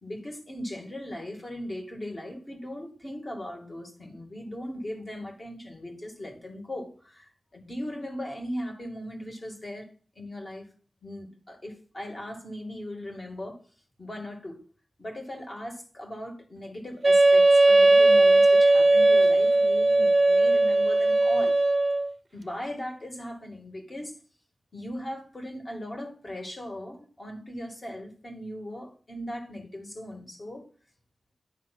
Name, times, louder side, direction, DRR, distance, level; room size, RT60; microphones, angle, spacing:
voice 1, 0.0-9.9 10.2-10.7 11.0-13.6 14.0-14.6 15.0-21.6 22.3-24.1 24.7-30.7, left 1 dB, 30° left, 2.1 m, -38 dB
Wind instrument woodwind instrument, 17.0-22.1, right 2 dB, 30° right, 0.6 m, -18 dB
10.5 x 3.6 x 6.0 m
wide cardioid pair, 130°, 0 cm